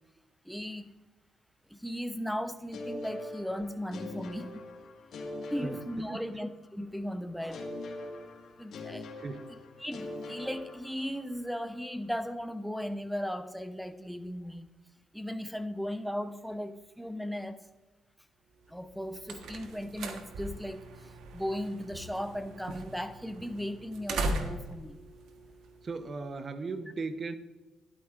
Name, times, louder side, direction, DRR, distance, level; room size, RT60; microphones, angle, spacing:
voice 1, 0.4-0.9 1.7-4.7 5.5-7.8 8.6-9.1 9.8-14.7 15.1-17.7 18.7-25.0, equal, ahead, 10 dB, 0.7 m, -37 dB
sound 1, 2.7-6.7 7.5-11.4, left 2 dB, 65° left, 1.7 m, -42 dB
voice 2, 6.1-6.4 9.2-9.5 25.8-27.4, right 3 dB, 40° right, 10 dB, 0.9 m, -37 dB
sound 2, 18.8-26.2, right 2 dB, 80° right, 1.2 m, -39 dB
12.5 x 11.5 x 2.5 m, 1.2 s
cardioid pair, 90°, 0 cm